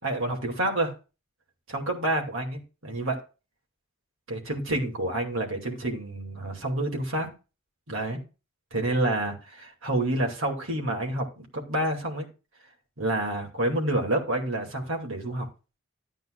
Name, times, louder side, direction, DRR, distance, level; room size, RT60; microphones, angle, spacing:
voice 1, 0.0-0.9 1.7-3.2 4.3-7.3 7.9-8.2 8.7-12.3 13.0-15.5, right 1 dB, 75° right, 2.5 m, -28 dB
12.5 x 9.0 x 2.4 m
head